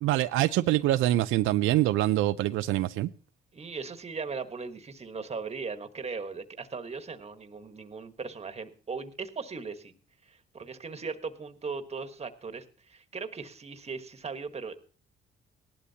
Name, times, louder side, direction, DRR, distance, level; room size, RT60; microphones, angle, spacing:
voice 1, 0.0-3.1, right 15 dB, 90° right, 0.5 m, -25 dB
voice 2, 3.5-9.9 10.2-14.7, right 4 dB, 30° right, 1.4 m, -38 dB
18.0 x 11.5 x 2.8 m
cardioid pair, 90°, 20 cm